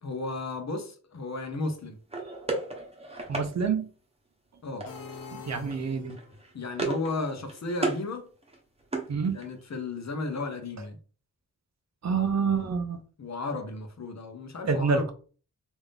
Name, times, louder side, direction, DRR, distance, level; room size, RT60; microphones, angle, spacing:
voice 1, 0.0-2.0 4.6-4.9 6.5-8.3 9.3-11.0 13.2-15.1, left 3 dB, 55° left, 0.8 m, -34 dB
sound 1, 2.1-3.5 4.8-5.2 5.5-5.8 6.1-7.1 7.4-8.0 8.4-9.7, right 3 dB, 20° right, 0.9 m, -34 dB
voice 2, 3.3-3.9 5.3-6.2 9.1-9.4 12.0-13.0 14.6-15.1, right 5 dB, 55° right, 0.6 m, -27 dB
sound 2, 4.9-6.4, left 5 dB, 85° left, 0.8 m, -44 dB
3.6 x 2.6 x 3.3 m
wide cardioid pair, 120°, 33 cm